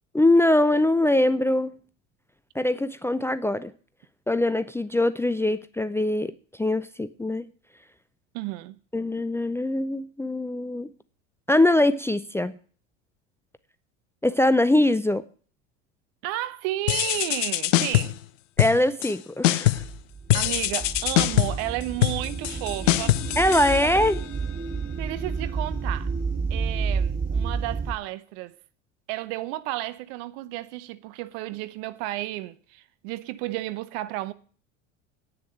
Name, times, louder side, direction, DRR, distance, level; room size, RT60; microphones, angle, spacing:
voice 1, 0.1-1.7 2.5-3.7 4.3-6.3 6.6-7.5 8.9-10.9 11.5-12.6 14.2-15.2 18.6-19.8 23.4-24.2, left 1 dB, 5° left, 0.5 m, -22 dB
voice 2, 8.3-8.8 16.2-18.2 20.3-23.4 23.8-23.9 25.0-26.1 26.5-28.6 29.1-34.3, right 16 dB, 60° right, 0.9 m, -32 dB
sound 1, 16.9-18.2 18.6-19.2 19.4-19.9 20.3-24.3, left 15 dB, 75° left, 0.7 m, -24 dB
sound 2, 19.7-27.9, right 5 dB, 20° right, 2.4 m, -30 dB
9.7 x 6.8 x 8.6 m
hypercardioid pair, 75°, 38 cm